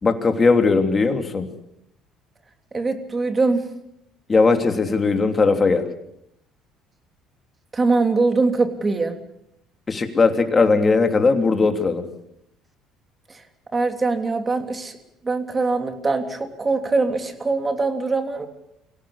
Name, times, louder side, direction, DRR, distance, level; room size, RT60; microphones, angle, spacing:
voice 1, 0.0-1.5 4.3-5.8 9.9-12.1, left 4 dB, 30° left, 6 dB, 3.1 m, -18 dB
voice 2, 2.7-3.6 7.7-9.2 13.7-14.9 15.2-18.5, right 3 dB, 30° right, 6 dB, 3.2 m, -22 dB
24.0 x 17.5 x 7.1 m, 0.80 s
supercardioid pair, 75°, 0 cm